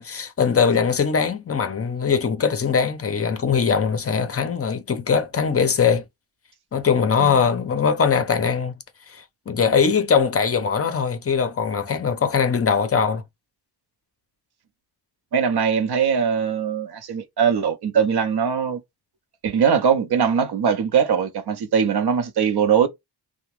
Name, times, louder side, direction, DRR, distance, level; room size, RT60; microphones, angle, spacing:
voice 1, 0.0-6.0 6.7-8.7 9.1-13.2, left 6 dB, 35° left, 0.5 m, -21 dB
voice 2, 15.3-18.8 19.4-22.9, right 7 dB, 65° right, 0.7 m, -21 dB
2.8 x 2.1 x 3.1 m
wide cardioid pair, 115°, 42 cm